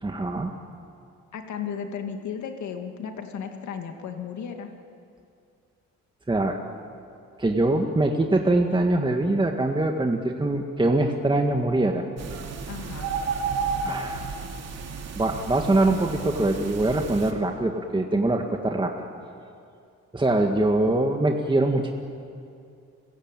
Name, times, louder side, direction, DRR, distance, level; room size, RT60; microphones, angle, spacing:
voice 1, 0.0-0.5 6.3-6.6 7.4-12.1 13.8-14.4 15.2-19.1 20.1-21.9, right 2 dB, 15° right, 3 dB, 1.8 m, -23 dB
voice 2, 1.3-4.7 12.7-13.2, left 7 dB, 70° left, 5 dB, 2.3 m, -34 dB
sound 1, 12.2-17.3, right 5 dB, 60° right, 2.9 m, -32 dB
30.0 x 16.0 x 9.1 m, 2.4 s
cardioid pair, 90°, 30 cm